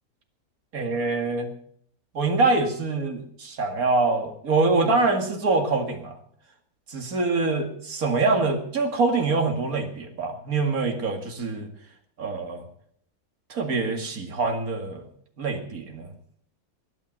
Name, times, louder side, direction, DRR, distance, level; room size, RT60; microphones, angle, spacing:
voice 1, 0.7-1.5 2.1-6.2 6.9-11.7 12.2-12.6 13.5-15.1 15.4-16.1, right 3 dB, 60° right, 4 dB, 2.6 m, -25 dB
21.0 x 9.2 x 6.5 m, 0.65 s
omnidirectional pair, 1.7 m